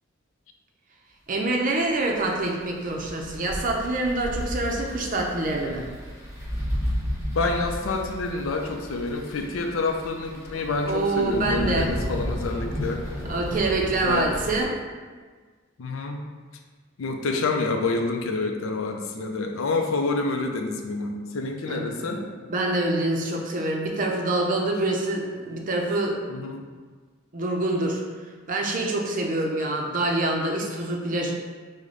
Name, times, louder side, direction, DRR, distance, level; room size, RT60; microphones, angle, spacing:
voice 1, 1.3-5.9 10.8-11.9 13.2-14.7 21.7-26.2 26.5-26.6 27.3-28.0 28.5-31.3, right 2 dB, 40° right, 0 dB, 0.5 m, -26 dB
sound 1, 1.9-14.6, equal, 15° right, 1.0 m, -33 dB
voice 2, 7.3-13.0 14.0-14.3 15.8-16.2 17.0-22.2 26.3-26.6, left 3 dB, 85° left, 4 dB, 0.5 m, -28 dB
4.9 x 2.1 x 3.8 m, 1.5 s
head